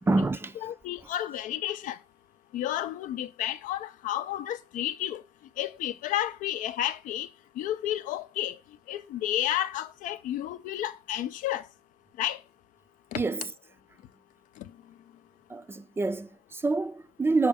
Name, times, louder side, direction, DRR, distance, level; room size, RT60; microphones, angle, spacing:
voice 1, 0.0-0.6 13.1-13.5 15.5-17.5, right 3 dB, 15° right, 0.4 m, -27 dB
voice 2, 0.6-2.0 2.5-5.2 5.6-7.3 7.6-8.6 8.9-11.6 12.2-12.4 13.1-13.2, left 12 dB, 85° left, 0.5 m, -31 dB
6.3 x 4.3 x 3.5 m
cardioid pair, 115°, 13 cm